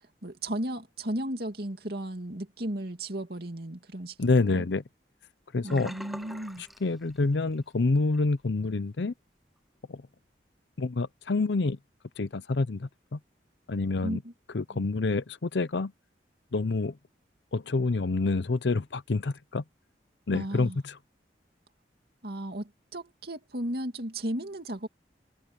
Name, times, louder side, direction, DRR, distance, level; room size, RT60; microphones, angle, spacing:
voice 1, 0.2-4.6 5.6-6.6 14.0-14.3 14.7-14.8 20.3-20.8 22.2-24.9, right 1 dB, 60° right, 2.7 m, -35 dB
voice 2, 4.2-4.8 5.5-5.9 6.6-9.1 9.9-10.0 10.8-11.8 12.2-13.2 13.7-14.2 14.5-15.9 16.5-17.0 17.5-19.6 20.3-21.0, left 3 dB, 75° left, 0.7 m, -27 dB
Sink (filling or washing), 5.7-7.7 8.0-8.3 8.7-8.8, equal, ahead, 0.6 m, -44 dB
head